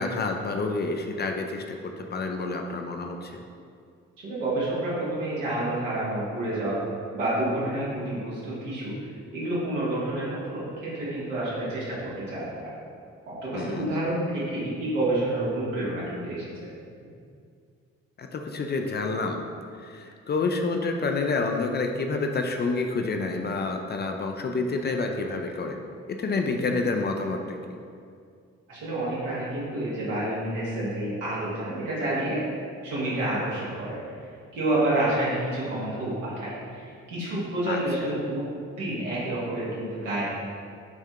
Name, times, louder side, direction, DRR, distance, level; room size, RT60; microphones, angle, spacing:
voice 1, 0.0-3.4 13.5-13.9 18.2-19.4 19.8-25.8 26.1-27.8 37.7-37.8, left 3 dB, 30° left, 4 dB, 0.4 m, -28 dB
voice 2, 4.2-6.8 7.1-8.9 9.3-12.7 13.3-16.4 28.7-32.4 32.8-34.2 34.5-38.4 38.8-40.2, right 1 dB, 85° right, -9 dB, 1.2 m, -29 dB
7.0 x 2.7 x 2.3 m, 2.3 s
hypercardioid pair, 40°, 37 cm